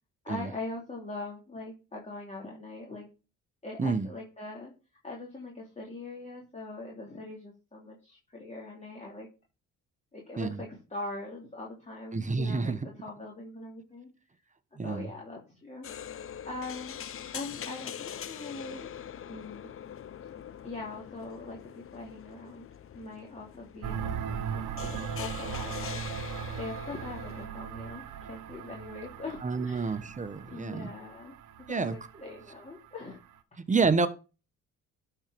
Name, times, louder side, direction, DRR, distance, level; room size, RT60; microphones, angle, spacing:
voice 1, 0.2-3.1 3.6-4.7 5.0-9.3 10.1-14.1 14.7-15.9 16.1-17.0 17.3-18.9 19.3-19.7 20.6-22.7 22.9-26.1 26.6-30.0 30.5-31.3 31.6-33.2, left 2 dB, 20° left, 2.9 m, -42 dB
voice 2, 12.1-12.8 14.8-15.1 29.4-30.9 31.7-31.9 33.7-34.1, right 4 dB, 25° right, 1.1 m, -28 dB
sound 1, 15.8-27.5, left 9 dB, 45° left, 0.7 m, -43 dB
sound 2, 23.8-33.3, right 8 dB, 85° right, 1.1 m, -39 dB
12.0 x 4.6 x 5.2 m
cardioid pair, 90°, 30 cm